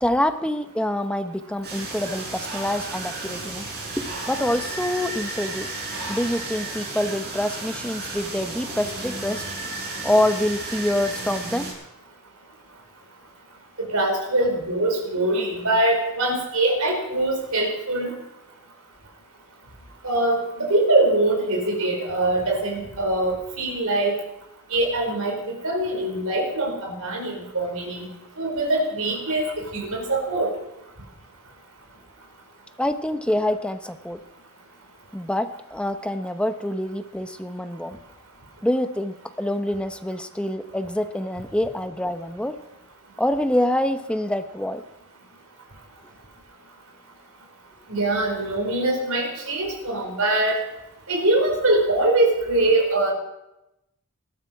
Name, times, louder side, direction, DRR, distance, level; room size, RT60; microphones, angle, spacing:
voice 1, 0.0-3.7 4.0-5.7 6.1-9.4 10.0-11.7 32.8-34.2 35.1-38.0 38.6-42.5 43.2-44.8, left 1 dB, 5° left, 8 dB, 0.8 m, -26 dB
sound 1, 1.6-11.7, right 2 dB, 50° right, 6.9 m, -33 dB
voice 2, 13.9-18.1 20.0-24.2 24.7-28.0 28.4-29.4 29.7-30.5 47.9-50.6 51.1-53.1, right 2 dB, 75° right, 0 dB, 5.2 m, -23 dB
20.0 x 13.0 x 4.8 m, 0.89 s
head